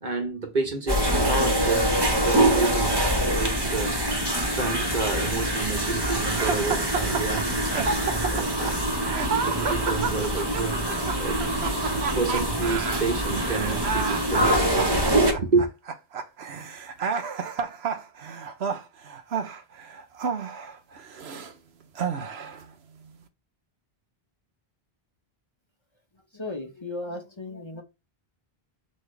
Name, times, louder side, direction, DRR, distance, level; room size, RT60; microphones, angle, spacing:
voice 1, 0.0-8.8 9.4-10.9 11.2-11.4 12.2-15.7, right 4 dB, 50° right, 1.4 m, -30 dB
sound 1, 0.9-15.3, right 1 dB, 25° right, 1.4 m, -25 dB
sound 2, 6.3-21.5 21.9-22.6, right 6 dB, 90° right, 1.1 m, -31 dB
voice 2, 26.3-27.8, left 2 dB, 30° left, 1.1 m, -35 dB
7.4 x 4.2 x 3.3 m
omnidirectional pair, 1.0 m